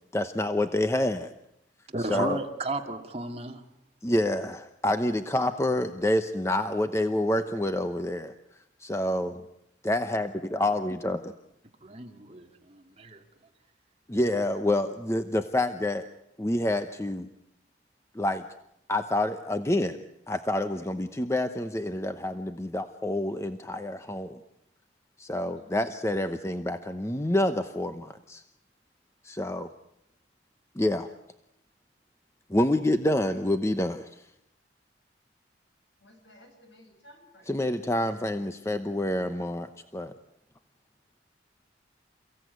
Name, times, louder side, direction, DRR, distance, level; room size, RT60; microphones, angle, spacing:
voice 1, 0.1-1.3 2.1-2.4 4.0-8.3 8.8-9.4 9.8-11.3 14.1-16.0 16.4-17.3 18.1-18.4 18.9-20.0 20.3-24.4 25.2-28.4 29.2-29.7 30.7-31.1 32.5-34.1 37.5-40.1, left 1 dB, 15° left, 9 dB, 0.9 m, -27 dB
voice 2, 1.9-3.6 11.8-13.2, right 2 dB, 30° right, 4 dB, 2.2 m, -34 dB
voice 3, 36.0-37.5, left 1 dB, 70° left, 5 dB, 7.1 m, -55 dB
29.5 x 16.5 x 9.4 m, 0.82 s
head